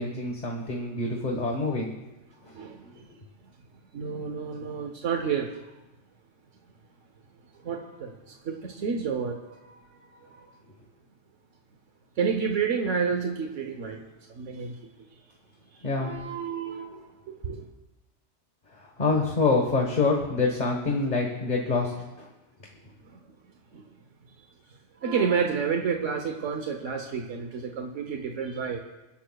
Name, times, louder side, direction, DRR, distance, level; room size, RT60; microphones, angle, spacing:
voice 1, 0.0-1.9 2.8-3.2 15.8-16.1 18.7-22.3, left 3 dB, 40° left, 0 dB, 1.4 m, -26 dB
voice 2, 3.9-5.5 7.6-8.1 8.4-9.8 10.3-10.5 12.2-14.0 14.4-14.7 16.0-17.0 17.4-17.6 23.7-23.8 25.0-28.8, right 6 dB, 85° right, 3 dB, 1.4 m, -29 dB
28.5 x 11.5 x 2.3 m, 1.0 s
omnidirectional pair, 1.2 m